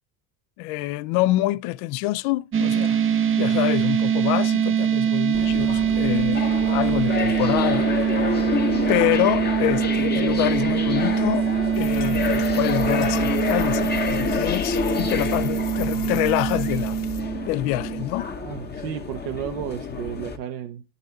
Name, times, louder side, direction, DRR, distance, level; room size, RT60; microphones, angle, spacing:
voice 1, 0.6-3.0 3.4-7.9 8.9-11.4 11.8-17.0 17.5-18.3, left 17 dB, 65° left, 0.5 m, -26 dB
sound 1, 2.5-18.1, right 8 dB, 25° right, 0.6 m, -23 dB
sound 2, 5.3-20.4, left 5 dB, 20° left, 0.8 m, -29 dB
sound 3, 11.7-17.2, left 7 dB, 45° left, 1.1 m, -34 dB
voice 2, 18.4-20.8, right 10 dB, 75° right, 0.8 m, -33 dB
10.5 x 4.1 x 3.9 m
hypercardioid pair, 80°, 49 cm